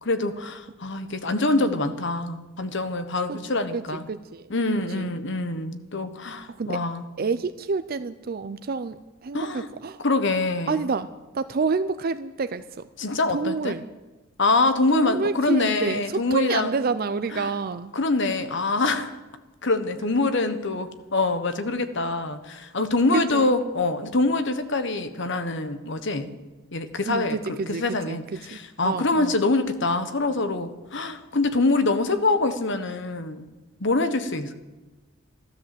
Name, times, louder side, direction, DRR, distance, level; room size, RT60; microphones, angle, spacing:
voice 1, 0.0-4.1 4.5-7.1 9.3-9.7 10.0-10.9 13.0-13.8 14.4-16.7 17.3-17.5 17.9-19.1 19.6-26.3 26.7-33.5 33.8-34.5, left 3 dB, 65° left, 9 dB, 1.3 m, -25 dB
voice 2, 1.0-1.8 3.3-3.4 3.7-3.8 4.1-4.5 5.0-5.1 6.6-6.8 7.2-10.0 10.7-12.6 13.3-13.9 14.9-17.9 23.1-23.5 27.1-28.6 28.8-29.3, right 4 dB, 50° right, 12 dB, 0.5 m, -28 dB
13.5 x 13.0 x 7.7 m, 1.2 s
head